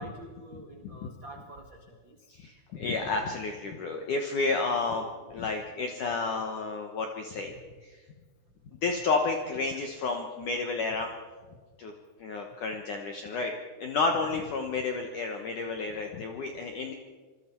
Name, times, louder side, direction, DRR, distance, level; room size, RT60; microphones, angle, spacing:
voice 1, 0.0-2.2, right 2 dB, 70° right, 2 dB, 1.1 m, -46 dB
voice 2, 0.5-1.1 2.3-7.5 7.8-8.0 8.8-11.2 11.8-11.9 12.2-13.5 13.8-16.9, left 4 dB, 70° left, 3 dB, 1.9 m, -31 dB
26.5 x 22.0 x 4.6 m, 1.4 s
omnidirectional pair, 5.6 m